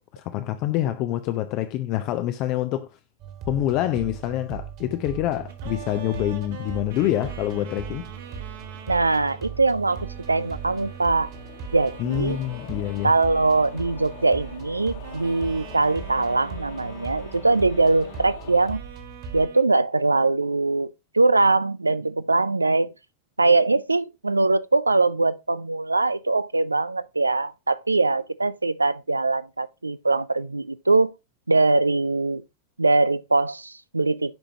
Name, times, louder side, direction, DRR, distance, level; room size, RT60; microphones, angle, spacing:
voice 1, 0.1-2.8 3.5-8.1 12.0-13.1, left 13 dB, 40° left, 0.6 m, -26 dB
sound 1, 3.2-19.5, right 6 dB, 40° right, 1.9 m, -39 dB
sound 2, 5.5-9.4 9.9-14.7 15.0-18.4 18.7-19.6, right 8 dB, 55° right, 1.6 m, -44 dB
sound 3, 6.4-18.7, left 7 dB, 60° left, 1.8 m, -46 dB
voice 2, 8.9-11.3 11.7-12.4 13.0-18.8 19.3-22.9 23.4-31.1 31.5-32.4 32.8-34.3, right 3 dB, 80° right, 0.3 m, -22 dB
10.5 x 5.0 x 2.7 m
figure-of-eight pair, 90°, 0 cm